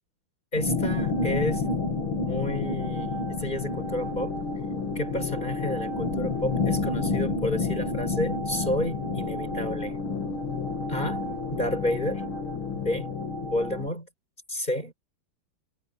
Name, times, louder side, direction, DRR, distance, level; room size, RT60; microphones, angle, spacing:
voice 1, 0.5-1.7 2.2-4.3 5.0-10.0 10.9-12.2 12.7-13.1 13.4-14.1 14.5-14.9, left 1 dB, 20° left, 5.4 m, -31 dB
sound 1, 0.6-13.9, left 3 dB, 80° left, 3.4 m, -29 dB
omnidirectional pair, 2.3 m